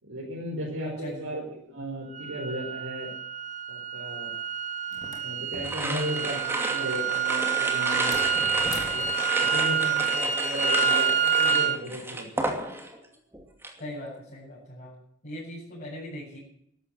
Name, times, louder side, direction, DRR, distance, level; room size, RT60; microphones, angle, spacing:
voice 1, 0.0-3.1 3.7-4.3 5.2-9.1 9.4-12.5, equal, 75° right, -4 dB, 5.3 m, -35 dB
voice 2, 0.8-1.3 13.8-15.0 15.2-16.4, left 1 dB, 45° left, -9 dB, 7.8 m, -39 dB
sound 1, 2.1-11.8, right 7 dB, 35° right, 1.2 m, -27 dB
sound 2, 4.9-6.3 7.9-9.3, left 2 dB, 20° left, 3.2 m, -41 dB
sound 3, 5.6-13.0 13.3-13.8, right 1 dB, 10° right, 2.6 m, -32 dB
13.5 x 12.5 x 7.9 m, 0.70 s
head